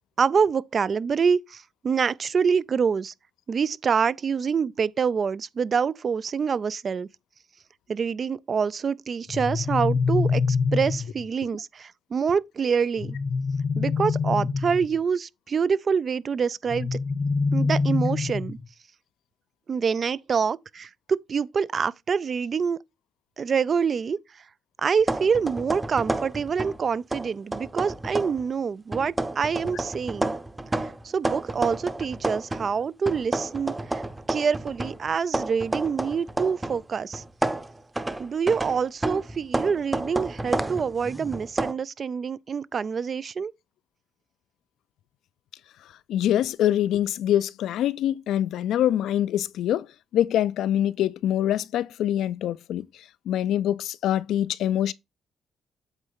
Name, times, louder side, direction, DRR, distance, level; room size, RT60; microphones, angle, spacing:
voice 1, 0.2-3.1 3.5-7.1 7.9-13.2 13.8-16.9 17.5-18.6 19.7-22.8 23.4-24.2 24.8-30.3 30.8-34.0 34.3-37.2 38.2-43.5, right 6 dB, 45° right, 0.3 m, -26 dB
sound 1, 9.3-11.3 13.0-15.0 16.7-18.7, left 4 dB, 40° left, 0.7 m, -25 dB
sound 2, 25.0-26.8 27.1-28.4 28.9-32.7 33.1-36.8 37.1-41.7, right 2 dB, 15° right, 0.7 m, -30 dB
voice 2, 46.1-49.9 50.1-52.9 53.3-54.9, left 11 dB, 80° left, 0.4 m, -24 dB
8.1 x 3.1 x 5.5 m
cardioid pair, 90°, 0 cm